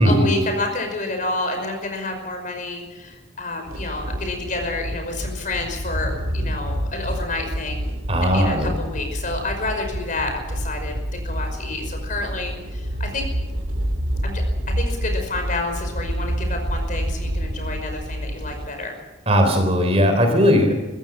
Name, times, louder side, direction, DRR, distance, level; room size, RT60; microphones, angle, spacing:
voice 1, 0.0-7.9 8.2-13.2 14.2-18.9, left 2 dB, 40° left, 4 dB, 5.4 m, -29 dB
sound 1, 3.6-18.7, equal, 90° right, 2.6 m, -28 dB
voice 2, 8.1-8.7 19.3-20.7, equal, 30° right, 6 dB, 3.7 m, -17 dB
23.5 x 15.5 x 7.3 m, 1.2 s
head